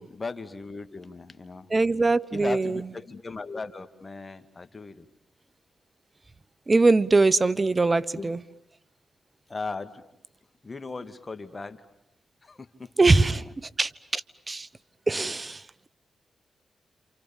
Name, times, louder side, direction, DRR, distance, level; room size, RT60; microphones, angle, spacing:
voice 1, 0.0-1.7 2.3-5.1 8.1-8.3 9.5-10.0 10.6-11.8 12.4-13.4, left 3 dB, 40° left, 10 dB, 2.3 m, -37 dB
voice 2, 1.7-2.9 6.7-8.4 13.0-14.7 15.1-15.9, right 3 dB, 35° right, 19 dB, 1.1 m, -22 dB
28.5 x 28.0 x 7.3 m, 0.80 s
supercardioid pair, 45°, 0 cm